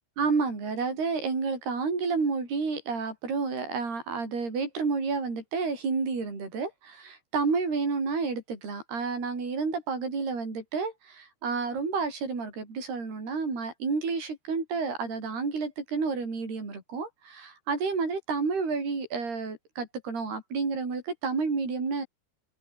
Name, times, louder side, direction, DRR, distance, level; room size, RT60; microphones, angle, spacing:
voice 1, 0.2-22.1, right 4 dB, 60° right, 10.0 m, -30 dB
open air
omnidirectional pair, 5.1 m